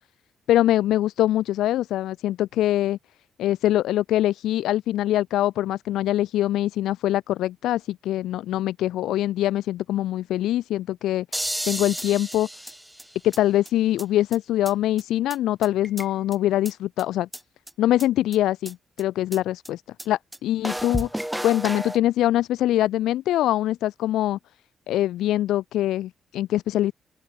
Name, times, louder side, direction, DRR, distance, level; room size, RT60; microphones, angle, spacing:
voice 1, 0.5-3.0 3.4-12.5 13.2-17.3 17.8-21.1 21.4-24.4 24.9-26.9, left 13 dB, 85° left, 0.6 m, -23 dB
sound 1, 11.3-13.4 13.7-13.8 14.0-14.1 14.3-14.4 14.7-14.8 15.0-15.1 15.3-15.4 15.6-16.4 16.7-16.8 17.0-17.1 17.3-17.4 17.7-17.8 18.0-18.1 18.3-18.4 18.7-18.8 19.0-19.1 19.3-19.4 19.7-19.8 20.0-20.1 20.3-20.4 20.6-22.0, equal, 5° right, 3.2 m, -32 dB
open air
cardioid pair, 70°, 0 cm